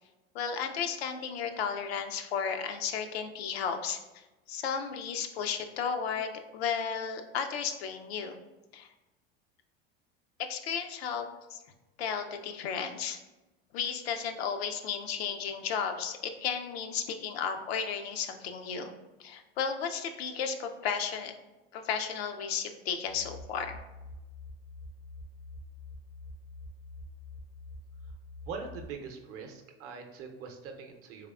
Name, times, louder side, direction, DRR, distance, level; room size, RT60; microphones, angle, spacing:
voice 1, 0.3-8.4 8.7-8.9 10.4-11.6 12.0-13.2 13.7-18.9 19.2-21.3 21.7-23.8, left 7 dB, 85° left, 6 dB, 0.5 m, -34 dB
sound 1, 23.1-28.8, left 2 dB, 5° left, 0.3 m, -46 dB
voice 2, 28.5-31.3, right 5 dB, 50° right, 4 dB, 0.6 m, -42 dB
3.4 x 3.4 x 2.3 m, 1.1 s
hypercardioid pair, 85°, 30 cm